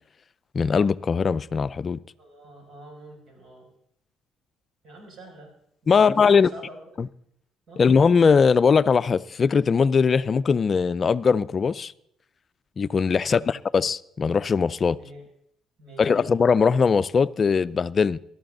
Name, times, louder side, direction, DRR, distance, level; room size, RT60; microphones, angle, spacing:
voice 1, 0.5-2.0 5.9-6.5 7.0-7.1 7.8-11.9 12.8-15.0 16.0-18.2, left 5 dB, 40° left, 0.4 m, -20 dB
voice 2, 2.2-3.7 4.8-5.5 5.8-6.8 7.7-7.9 13.2-13.6 15.0-15.2 15.8-16.3, right 1 dB, 60° right, 6.5 m, -45 dB
18.0 x 12.5 x 3.9 m
cardioid pair, 90°, 0 cm